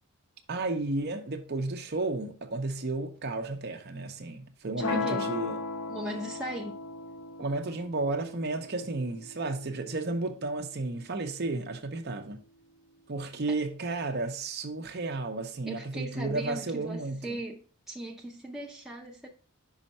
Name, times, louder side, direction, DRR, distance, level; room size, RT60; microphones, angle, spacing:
voice 1, 0.5-5.6 7.4-12.4 13.1-17.4, right 2 dB, 50° right, 0.7 m, -33 dB
sound 1, 4.8-10.8, left 3 dB, 85° left, 0.9 m, -37 dB
voice 2, 4.8-5.3 5.9-6.8 13.5-13.6 15.7-19.3, right 1 dB, ahead, 0.6 m, -38 dB
5.6 x 5.4 x 4.2 m
head